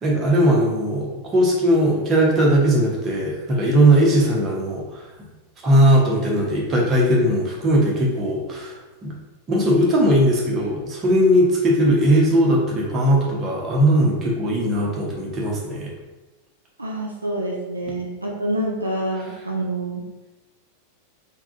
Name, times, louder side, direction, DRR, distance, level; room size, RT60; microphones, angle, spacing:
voice 1, 0.0-5.1 5.6-9.1 9.5-15.9, right 1 dB, 25° right, -3 dB, 0.9 m, -19 dB
voice 2, 16.8-20.0, right 1 dB, 85° right, -3 dB, 0.6 m, -27 dB
3.6 x 2.3 x 3.7 m, 1.1 s
figure-of-eight pair, 90°, 0 cm